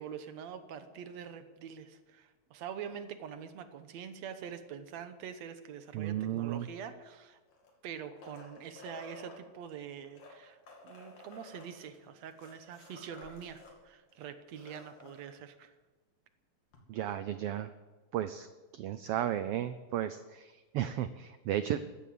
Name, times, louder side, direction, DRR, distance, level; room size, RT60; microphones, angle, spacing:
voice 1, 0.0-7.4 7.8-10.6 10.8-15.7, right 8 dB, 70° right, 9 dB, 2.2 m, -45 dB
voice 2, 5.9-6.7 16.9-17.7 18.1-18.5 18.7-21.8, right 11 dB, 85° right, 12 dB, 1.3 m, -34 dB
sound 1, 7.5-9.4 10.0-13.8 14.1-14.2 14.4-15.2 16.7-16.8, left 2 dB, 75° left, 3.9 m, -52 dB
14.5 x 12.5 x 7.7 m, 1.2 s
omnidirectional pair, 3.4 m